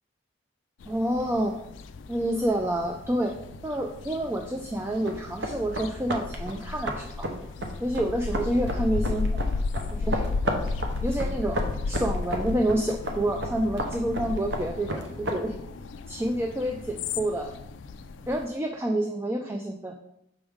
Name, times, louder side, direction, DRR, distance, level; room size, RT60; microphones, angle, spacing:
sound 1, 0.8-18.5, left 3 dB, 70° left, 0.4 m, -34 dB
voice 1, 0.9-1.6 2.1-3.4 3.6-7.3 7.8-9.4 9.9-10.2 11.0-11.6 11.9-15.6 16.1-17.5 18.3-19.9, right 1 dB, 10° right, 2 dB, 0.3 m, -28 dB
sound 2, 4.9-15.4, right 1 dB, 60° right, 0.8 m, -34 dB
6.1 x 4.9 x 3.6 m, 0.80 s
head